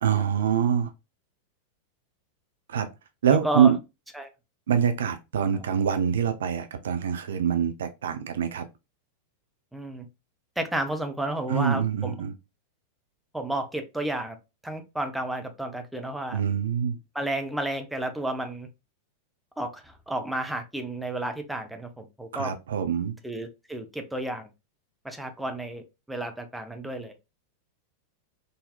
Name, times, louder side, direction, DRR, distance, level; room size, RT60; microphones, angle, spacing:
voice 1, 0.0-0.9 2.7-2.9 3.2-3.7 4.7-8.6 11.5-12.3 16.3-17.0 22.3-23.1, right 8 dB, 60° right, 0.4 m, -24 dB
voice 2, 3.3-3.7 4.1-4.3 5.5-5.6 9.7-10.1 10.6-12.1 13.3-14.4 14.6-16.4 17.1-18.7 19.6-22.5 23.2-24.5 25.0-27.1, right 1 dB, 5° right, 0.6 m, -32 dB
3.9 x 2.7 x 2.3 m
figure-of-eight pair, 90°, 0 cm